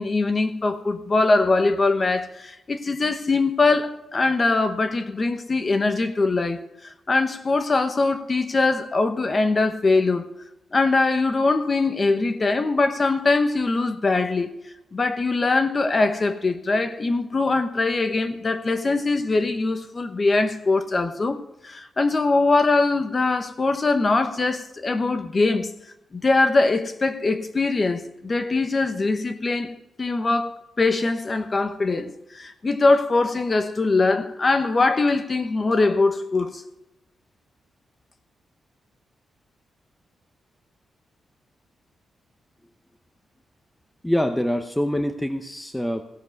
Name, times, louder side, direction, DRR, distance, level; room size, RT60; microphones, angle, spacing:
voice 1, 0.0-10.2 10.7-14.5 14.9-25.7 26.1-29.7 30.0-36.6, left 3 dB, 30° left, 1.0 m, -22 dB
voice 2, 44.0-46.0, equal, 5° left, 0.7 m, -25 dB
16.5 x 7.3 x 5.3 m
wide cardioid pair, 130°, 0 cm